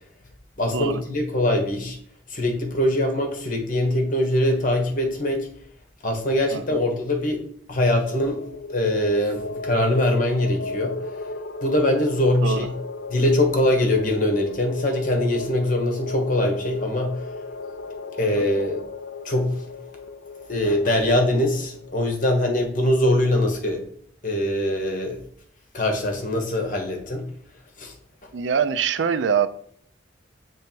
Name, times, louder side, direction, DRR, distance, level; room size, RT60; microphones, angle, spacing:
voice 1, 0.6-2.0 2.3-5.5 6.0-7.4 7.7-8.4 8.7-11.0 11.6-12.7 13.1-17.2 18.2-18.8 19.2-19.6 20.5-23.8 24.2-25.2 25.7-27.3 27.8-27.9, left 1 dB, 45° left, 3 dB, 1.2 m, -22 dB
voice 2, 6.5-6.8 12.4-12.7 18.3-18.4 28.3-29.5, right 7 dB, 75° right, 12 dB, 0.4 m, -24 dB
sound 1, 7.8-22.1, left 3 dB, 70° left, 0.4 m, -36 dB
6.7 x 3.2 x 4.5 m, 0.63 s
head